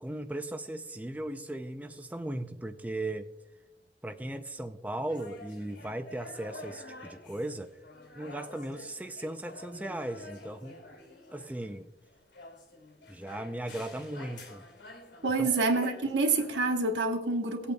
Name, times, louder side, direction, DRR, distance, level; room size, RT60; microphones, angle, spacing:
voice 1, 0.0-3.3 4.0-7.7 8.2-10.8 11.3-11.9 13.1-14.6 15.4-15.5, right 1 dB, 10° right, 0.4 m, -37 dB
sound 1, 5.1-16.7, left 2 dB, 90° left, 2.4 m, -49 dB
voice 2, 15.2-17.7, right 3 dB, 80° right, 1.1 m, -27 dB
18.5 x 8.4 x 2.3 m
head